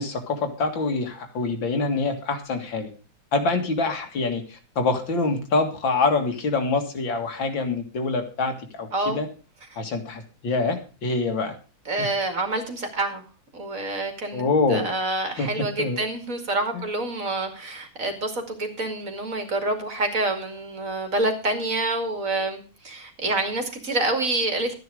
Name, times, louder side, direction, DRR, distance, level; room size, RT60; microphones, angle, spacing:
voice 1, 0.0-2.9 3.3-9.3 9.8-11.5 12.0-12.1 14.3-14.9 15.3-15.5 15.8-16.0 16.7-16.8, left 3 dB, 75° left, 5 dB, 2.7 m, -25 dB
voice 2, 11.9-13.2 13.5-24.7, right 2 dB, 45° right, 5 dB, 2.8 m, -27 dB
13.0 x 9.6 x 4.8 m, 0.35 s
omnidirectional pair, 2.1 m